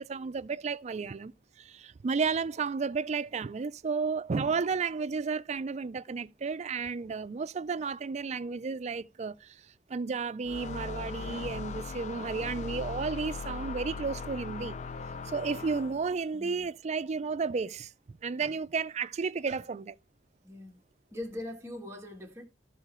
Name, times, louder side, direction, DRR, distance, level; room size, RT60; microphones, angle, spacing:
voice 1, 0.0-9.6 9.9-14.8 15.3-20.0, right 5 dB, 40° right, 0.4 m, -33 dB
sound 1, 10.5-16.2, left 4 dB, 40° left, 0.4 m, -39 dB
voice 2, 16.3-16.7 20.4-20.8 21.1-22.5, left 1 dB, 15° right, 1.7 m, -41 dB
13.0 x 6.9 x 3.0 m
head